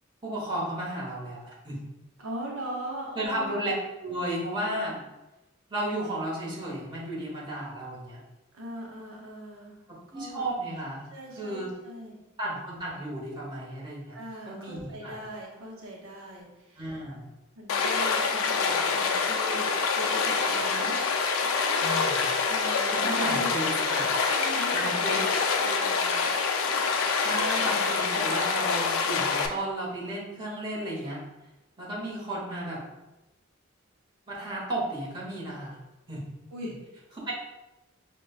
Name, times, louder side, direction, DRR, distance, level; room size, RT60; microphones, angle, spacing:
voice 1, 0.2-1.8 3.2-3.7 4.0-5.0 5.7-8.2 10.1-11.0 11.4-11.7 12.4-14.2 14.5-15.2 16.8-17.2 21.8-22.3 22.9-24.1 24.7-25.2 27.1-31.2 31.8-32.8 34.3-35.8 36.1-36.2 37.2-37.3, right 1 dB, 20° right, -6 dB, 1.0 m, -33 dB
voice 2, 2.2-3.7 8.5-9.8 10.1-10.4 11.1-12.2 14.1-17.0 17.6-21.0 22.4-23.5 24.4-25.3 25.6-26.2 36.5-36.8, right 1 dB, 75° right, -2 dB, 0.6 m, -39 dB
Stream, 17.7-29.5, left 5 dB, 80° left, 0.4 m, -26 dB
5.1 x 2.1 x 2.3 m, 1.0 s
head